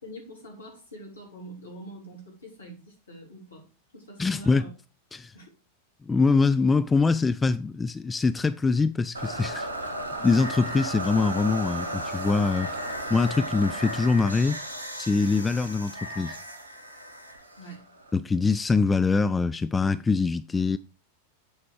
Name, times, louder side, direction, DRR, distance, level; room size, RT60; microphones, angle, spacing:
voice 1, 0.0-3.7 3.9-4.7 5.3-5.5 17.6-17.8, right 1 dB, 75° left, 3.3 m, -44 dB
voice 2, 4.2-4.7 5.1-5.3 6.0-9.7 10.2-12.7 13.1-14.6 14.9-16.4 18.1-20.8, left 4 dB, 15° left, 0.3 m, -24 dB
sound 1, 9.1-18.2, right 1 dB, 75° right, 1.5 m, -35 dB
8.2 x 4.7 x 4.8 m
figure-of-eight pair, 90°, 0 cm